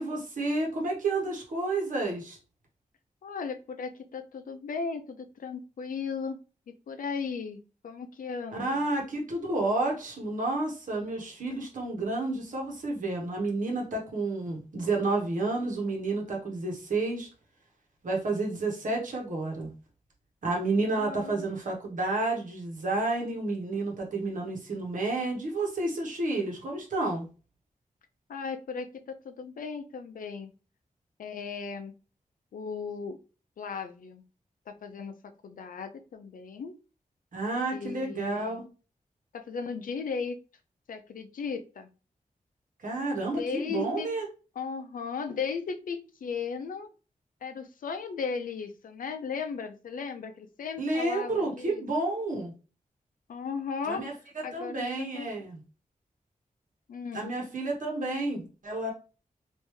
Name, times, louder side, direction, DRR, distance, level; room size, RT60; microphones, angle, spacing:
voice 1, 0.0-2.4 8.6-17.3 18.0-19.7 20.4-27.3 37.3-38.6 42.8-44.2 50.8-52.5 53.8-55.6 57.1-58.9, right 2 dB, 70° right, 0 dB, 1.1 m, -30 dB
voice 2, 3.2-6.4 6.7-8.9 20.9-21.5 28.3-30.5 31.2-31.9 32.5-33.2 33.6-34.3 34.7-36.7 37.7-38.6 39.3-40.4 40.9-41.9 43.4-44.1 44.6-46.9 47.4-51.8 53.3-54.0 54.4-55.3 56.9-57.4, left 5 dB, 80° left, 8 dB, 0.5 m, -36 dB
3.3 x 2.6 x 3.1 m, 0.35 s
wide cardioid pair, 165°, 14 cm